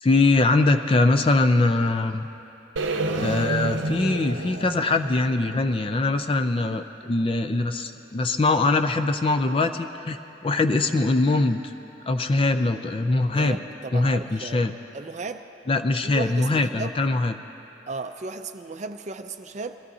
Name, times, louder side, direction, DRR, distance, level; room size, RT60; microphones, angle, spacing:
voice 1, 0.0-2.2 3.2-11.7 12.1-13.6 13.9-14.7 15.7-17.3, left 2 dB, 30° left, 8 dB, 0.4 m, -22 dB
sound 1, 2.8-6.8, right 2 dB, 80° right, 0.7 m, -30 dB
voice 2, 13.3-14.6 14.9-15.5 16.0-16.9 17.9-19.8, right 3 dB, 35° right, 8 dB, 0.4 m, -35 dB
21.0 x 14.5 x 2.8 m, 2.9 s
head